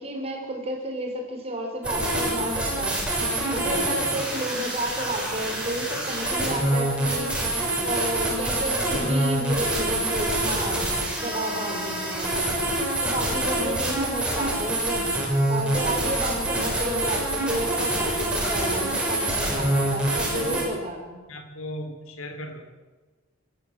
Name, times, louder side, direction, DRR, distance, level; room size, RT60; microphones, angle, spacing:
voice 1, 0.0-3.1 3.5-7.4 7.8-12.6 13.0-15.1 15.5-21.2, right 1 dB, 30° right, 2 dB, 4.7 m, -31 dB
sound 1, 1.8-20.6, right 1 dB, 5° right, 6.3 m, -26 dB
voice 2, 3.6-4.1 20.1-20.7 21.3-22.6, left 1 dB, 75° left, 7 dB, 3.3 m, -39 dB
25.5 x 14.5 x 7.7 m, 1.3 s
head